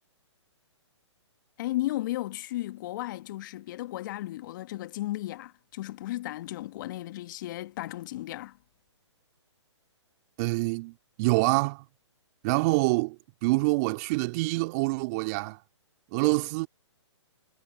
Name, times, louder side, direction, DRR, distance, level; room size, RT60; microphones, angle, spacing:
voice 1, 1.6-8.6, left 16 dB, 40° left, 1.7 m, -34 dB
voice 2, 10.4-11.8 12.4-13.2 13.4-15.6 16.1-16.7, right 25 dB, 35° right, 2.4 m, -26 dB
figure-of-eight pair, 130°, 15 cm